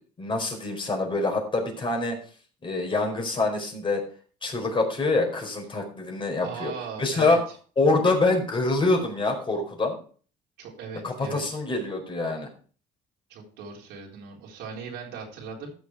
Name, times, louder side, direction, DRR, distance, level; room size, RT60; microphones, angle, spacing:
voice 1, 0.2-2.2 2.6-4.0 4.4-6.7 7.0-7.4 7.8-9.9 11.0-12.5, left 3 dB, 30° left, 2 dB, 4.6 m, -25 dB
voice 2, 6.4-7.4 10.6-11.4 13.3-15.7, right 6 dB, 90° right, -1 dB, 4.2 m, -38 dB
14.0 x 7.2 x 4.7 m, 0.41 s
cardioid pair, 110°, 17 cm